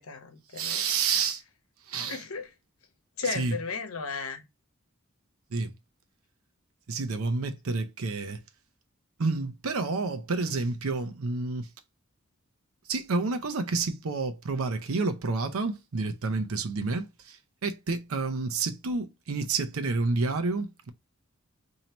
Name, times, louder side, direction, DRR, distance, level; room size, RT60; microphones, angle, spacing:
voice 1, 0.0-0.8 2.1-2.5 3.2-4.5, left 5 dB, 90° left, 0.9 m, -35 dB
voice 2, 0.5-1.4 1.9-2.2 3.3-3.6 5.5-5.7 6.9-8.4 9.2-11.7 12.9-20.9, right 3 dB, 85° right, 0.6 m, -29 dB
2.9 x 2.8 x 4.3 m
head